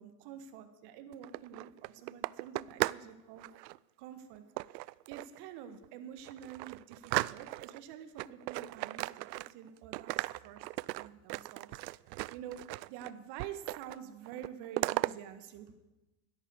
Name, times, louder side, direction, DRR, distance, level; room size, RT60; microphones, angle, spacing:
voice 1, 0.0-3.5 4.0-9.2 9.5-11.8 12.3-12.6 12.9-15.7, right 9 dB, 55° right, 9 dB, 1.9 m, -48 dB
sound 1, 1.1-3.1 3.4-3.8 4.6-5.4 5.8-5.9 6.3-7.8 8.2-9.7 9.9-13.1 13.4-14.0 14.3-15.1, right 20 dB, 85° right, 0.6 m, -36 dB
13.5 x 11.0 x 8.1 m, 1.0 s
supercardioid pair, 130°, 49 cm